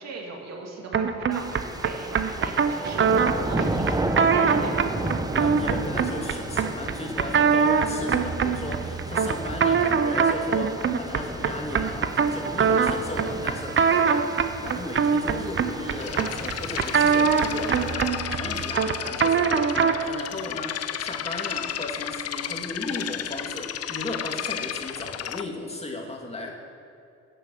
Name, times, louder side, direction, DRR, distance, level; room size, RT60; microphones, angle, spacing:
voice 1, 0.0-5.1, right 3 dB, 60° right, 0 dB, 2.2 m, -37 dB
sound 1, 0.9-20.1, right 6 dB, 40° right, 0.8 m, -24 dB
sound 2, 1.3-17.9, right 2 dB, 10° right, 0.9 m, -34 dB
voice 2, 5.4-26.5, left 2 dB, 20° left, 0 dB, 2.1 m, -35 dB
sound 3, 16.0-25.4, left 10 dB, 55° left, 0.6 m, -33 dB
11.0 x 6.8 x 7.6 m, 2.5 s
cardioid pair, 90°, 30 cm